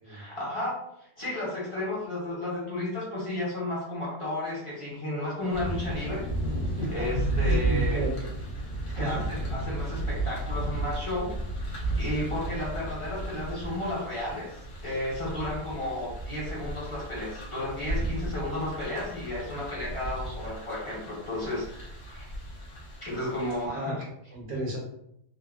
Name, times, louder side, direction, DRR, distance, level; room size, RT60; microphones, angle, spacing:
voice 1, 0.1-6.2 6.9-8.0 8.9-11.4 12.0-14.5 14.8-22.3 23.0-24.0, left 1 dB, 30° left, -6 dB, 0.6 m, -33 dB
sound 1, 5.5-23.6, right 1 dB, 55° left, 0.9 m, -33 dB
voice 2, 6.6-7.0 7.4-8.2 8.6-9.2 23.7-24.0 24.3-24.8, right 1 dB, 70° right, -4 dB, 1.1 m, -34 dB
3.4 x 2.0 x 2.3 m, 0.75 s
omnidirectional pair, 1.5 m